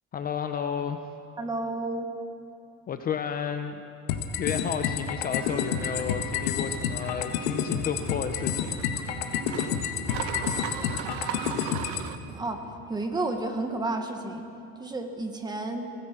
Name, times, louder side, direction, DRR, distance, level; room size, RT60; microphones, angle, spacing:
voice 1, 0.1-1.0 2.9-3.8 4.4-8.8, left 7 dB, 30° left, 7 dB, 0.8 m, -32 dB
voice 2, 1.4-2.1 12.3-12.6 12.9-14.5 14.8-15.9, right 2 dB, 15° right, 4 dB, 1.7 m, -31 dB
sound 1, 4.1-12.1, left 8 dB, 80° left, 1.7 m, -29 dB
sound 2, 5.4-12.2, right 11 dB, 65° right, 1.2 m, -39 dB
25.0 x 18.0 x 6.2 m, 2.9 s
cardioid pair, 155°, 32 cm